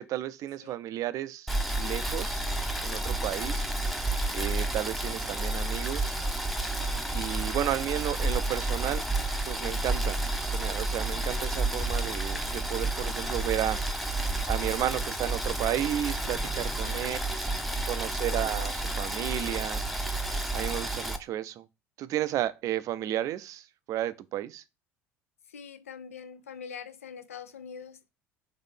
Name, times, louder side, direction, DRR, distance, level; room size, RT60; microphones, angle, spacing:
voice 1, 0.0-2.4 2.8-3.7 4.3-6.1 7.1-9.0 9.5-10.2 10.5-13.9 14.5-17.4 17.8-19.8 20.5-21.7 22.0-24.6, right 12 dB, 45° right, 0.4 m, -33 dB
Boiling, 1.5-21.2, right 2 dB, ahead, 0.6 m, -30 dB
voice 2, 6.7-7.1 16.8-17.3 18.4-18.7 25.5-28.1, left 6 dB, 80° left, 0.4 m, -45 dB
3.9 x 3.1 x 3.6 m
figure-of-eight pair, 60°, 8 cm